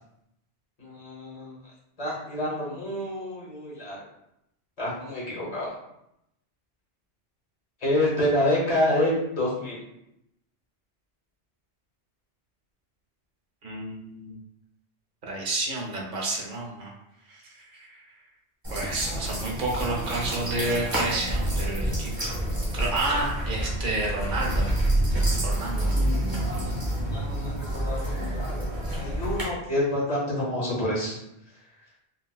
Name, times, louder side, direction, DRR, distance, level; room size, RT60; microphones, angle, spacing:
voice 1, 0.8-1.6 2.0-4.0 4.8-5.7 7.8-9.8 25.8-26.2 26.5-31.2, left 1 dB, 35° left, -5 dB, 1.1 m, -28 dB
voice 2, 13.6-14.4 15.3-16.9 17.3-18.0 18.7-22.2 22.7-24.7 25.4-25.9, right 2 dB, 55° right, -1 dB, 0.8 m, -30 dB
sound 1, 18.6-29.4, right 1 dB, 20° right, 0.9 m, -28 dB
3.9 x 2.2 x 2.3 m, 0.81 s
omnidirectional pair, 1.1 m